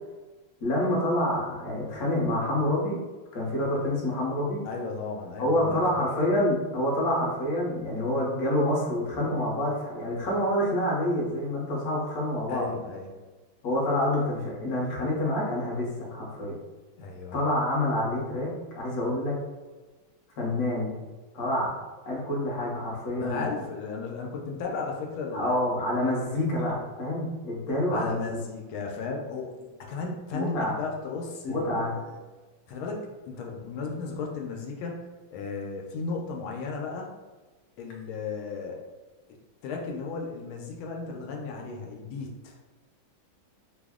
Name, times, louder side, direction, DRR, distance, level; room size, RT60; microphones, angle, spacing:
voice 1, 0.6-3.0 3.3-4.6 5.4-12.6 13.6-16.6 17.3-19.4 20.4-21.0 21.3-21.7 22.0-23.4 25.3-28.4 30.3-30.8 31.4-31.9, left 1 dB, 55° left, -3 dB, 1.2 m, -27 dB
voice 2, 4.6-5.8 6.1-6.3 12.5-13.1 17.0-17.4 23.2-26.0 27.9-29.5 29.9-32.2 32.7-37.1 37.8-38.8 39.6-42.6, left 4 dB, 85° left, 0 dB, 1.4 m, -35 dB
3.4 x 2.0 x 3.5 m, 1.2 s
omnidirectional pair, 2.2 m